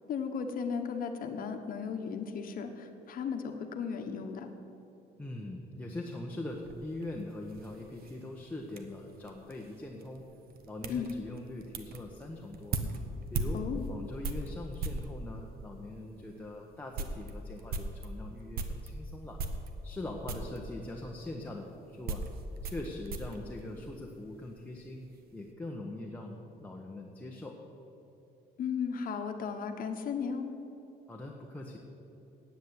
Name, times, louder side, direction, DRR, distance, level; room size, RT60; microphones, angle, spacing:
voice 1, 0.1-4.5 10.9-11.1 13.5-13.9 28.6-30.5, left 6 dB, 55° left, 5 dB, 1.3 m, -35 dB
voice 2, 5.2-10.2 10.6-12.8 13.3-13.6 13.9-19.4 19.8-22.2 22.6-25.0 25.3-27.6 31.1-31.8, left 2 dB, 10° left, -1 dB, 1.1 m, -42 dB
sound 1, 6.5-15.1 15.9-16.0 16.4-16.5 16.8-18.9 19.4-20.0 20.3-20.6 21.5-24.4 24.6-25.2, right 3 dB, 60° right, 1.1 m, -39 dB
9.4 x 8.1 x 9.3 m, 2.9 s
cardioid pair, 110°, 17 cm